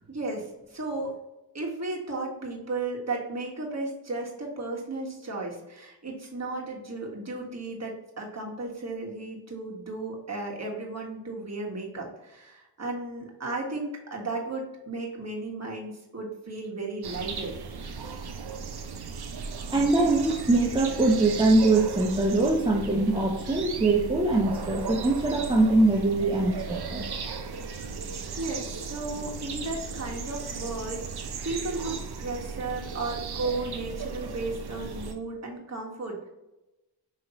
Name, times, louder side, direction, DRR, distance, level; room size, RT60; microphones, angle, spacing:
voice 1, 0.1-1.2 1.5-17.5 28.4-36.3, right 2 dB, 35° right, -1 dB, 1.5 m, -34 dB
sound 1, 17.0-35.1, right 5 dB, 55° right, 0.7 m, -36 dB
voice 2, 19.7-27.0, right 2 dB, 10° right, -1 dB, 0.7 m, -23 dB
5.3 x 3.2 x 2.9 m, 0.98 s
cardioid pair, 55°, 45 cm